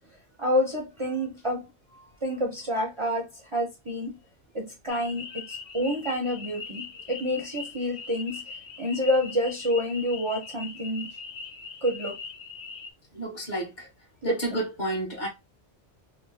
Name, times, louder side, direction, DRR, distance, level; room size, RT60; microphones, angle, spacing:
voice 1, 0.4-1.6 2.2-4.2 4.5-8.4 8.8-11.1 11.8-12.2 14.2-14.3, left 1 dB, 30° right, 0.6 m, -28 dB
sound 1, 4.9-12.9, left 4 dB, 65° left, 1.0 m, -41 dB
voice 2, 13.1-13.9 14.2-15.3, right 1 dB, 40° left, 1.2 m, -31 dB
3.0 x 2.0 x 3.4 m
omnidirectional pair, 1.2 m